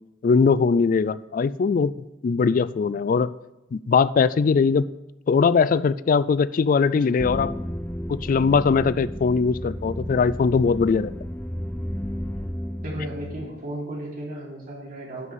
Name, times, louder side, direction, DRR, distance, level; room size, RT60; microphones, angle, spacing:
voice 1, 0.2-1.9 2.2-3.3 3.7-4.9 5.3-7.5 8.1-11.1, left 5 dB, 50° left, 17 dB, 0.3 m, -20 dB
sound 1, 7.2-13.5, equal, 10° left, 0.7 m, -32 dB
voice 2, 12.8-15.3, right 1 dB, 50° right, -3 dB, 3.8 m, -34 dB
11.0 x 6.2 x 7.4 m, 0.94 s
head